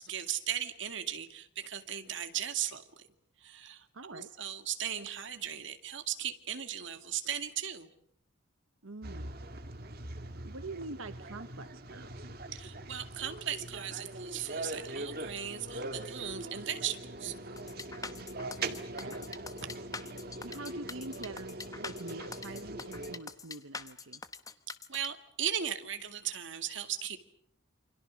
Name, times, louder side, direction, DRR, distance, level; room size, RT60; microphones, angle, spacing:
voice 1, 0.0-3.0 3.4-7.9 12.5-17.3 24.9-27.2, right 10 dB, 60° right, 8 dB, 2.3 m, -37 dB
voice 2, 3.9-4.3 8.8-9.3 10.4-12.3 18.9-19.3 20.4-24.2, right 3 dB, 85° right, 10 dB, 1.1 m, -45 dB
sound 1, 9.0-23.2, right 2 dB, 45° right, 2.0 m, -42 dB
sound 2, 17.6-25.1, left 4 dB, 15° left, 1.0 m, -44 dB
28.5 x 26.5 x 6.4 m, 0.70 s
head